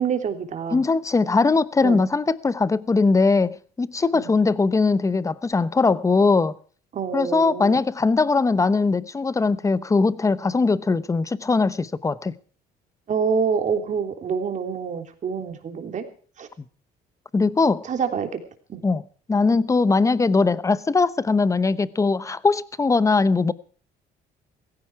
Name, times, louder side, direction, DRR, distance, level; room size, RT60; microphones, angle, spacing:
voice 1, 0.0-0.8 1.8-2.0 4.1-4.3 6.9-7.8 13.1-16.1 16.4-16.5 17.8-18.4 18.7-18.8, right 6 dB, 45° right, 3.3 m, -26 dB
voice 2, 0.7-6.5 7.1-12.3 17.3-17.9 18.8-19.0 19.3-23.5, left 4 dB, 20° left, 0.9 m, -20 dB
16.5 x 15.5 x 4.7 m
cardioid pair, 110°, 17 cm